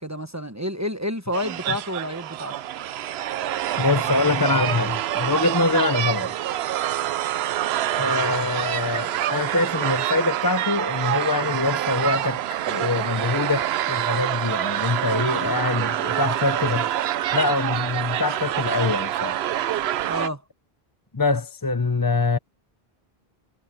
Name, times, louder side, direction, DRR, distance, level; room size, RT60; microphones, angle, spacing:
voice 1, 0.0-2.6 20.1-20.4, left 1 dB, 15° right, 1.1 m, -29 dB
sound 1, 1.3-20.3, right 12 dB, 85° right, 0.8 m, -26 dB
voice 2, 3.8-6.3 8.0-16.9 17.3-19.4 21.1-22.4, left 3 dB, 25° left, 0.6 m, -24 dB
omnidirectional pair, 1.0 m